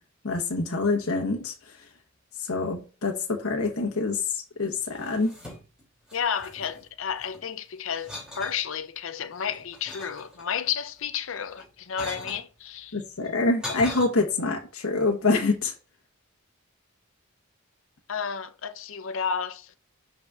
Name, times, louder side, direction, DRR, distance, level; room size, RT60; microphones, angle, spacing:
voice 1, 0.2-1.5 2.4-3.1 3.4-5.3 12.9-15.7, left 3 dB, 85° left, 1.2 m, -26 dB
sound 1, 4.8-5.8 6.1-7.4 7.9-8.6 9.2-10.7 11.5-12.4 13.2-14.0, left 1 dB, 5° right, 2.8 m, -40 dB
voice 2, 6.1-13.0 18.1-19.8, left 7 dB, 65° left, 0.6 m, -32 dB
10.5 x 4.1 x 2.4 m
head